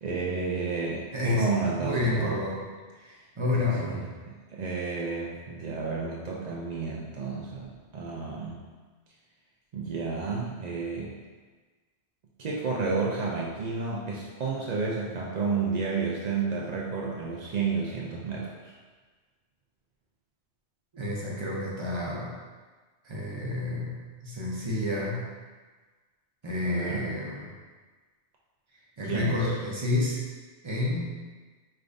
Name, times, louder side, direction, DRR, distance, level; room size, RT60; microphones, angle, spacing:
voice 1, 0.0-2.4 3.6-8.6 9.7-11.2 12.4-18.7 26.6-27.1 29.1-29.5, right 4 dB, 70° right, -3 dB, 0.4 m, -31 dB
voice 2, 1.1-1.5 1.8-2.6 2.9-4.1 20.9-22.4 23.0-25.3 26.4-27.4 29.0-30.2 30.6-31.2, left 2 dB, 30° right, -4 dB, 0.7 m, -29 dB
4.9 x 3.3 x 2.5 m, 1.4 s
omnidirectional pair, 1.3 m